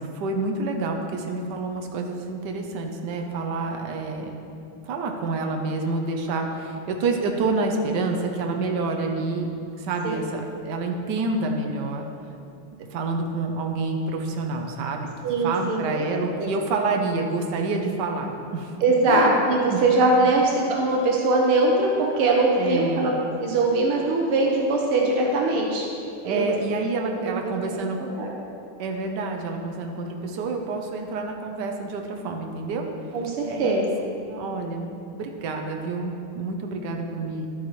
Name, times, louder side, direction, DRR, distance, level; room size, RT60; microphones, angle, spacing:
voice 1, 0.1-4.3 4.9-9.5 9.8-12.1 12.8-15.1 15.4-18.7 19.1-19.3 19.7-19.9 20.2-20.3 22.6-23.1 26.2-28.0 28.8-32.9 33.5-33.9 34.2-37.5, right 3 dB, 60° right, 2 dB, 1.3 m, -28 dB
voice 2, 15.2-16.0 16.4-16.5 18.8-23.1 23.4-25.8 26.2-26.5 27.2-27.6 28.0-28.3 33.1-33.8, right 2 dB, 80° right, -1 dB, 1.8 m, -22 dB
12.0 x 8.6 x 3.2 m, 2.6 s
omnidirectional pair, 2.4 m